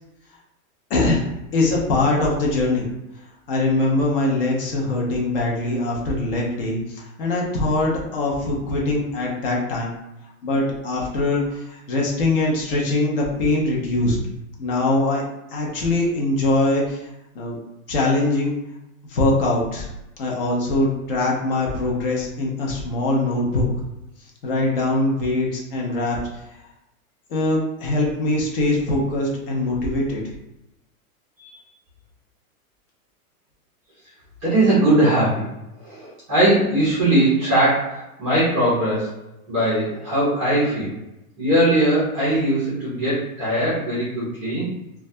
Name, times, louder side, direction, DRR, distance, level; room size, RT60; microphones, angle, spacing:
voice 1, 0.9-2.9 3.5-9.9 10.4-14.2 14.6-15.2 15.5-17.1 17.3-17.6 17.9-18.5 19.1-19.9 20.2-23.7 24.4-26.2 27.3-30.2, left 2 dB, 40° left, -2 dB, 0.6 m, -22 dB
voice 2, 34.4-35.5 35.8-39.1 39.5-40.9 41.4-44.7, right 1 dB, 15° right, -10 dB, 0.4 m, -20 dB
2.2 x 2.2 x 2.6 m, 0.92 s
supercardioid pair, 160°, 43 cm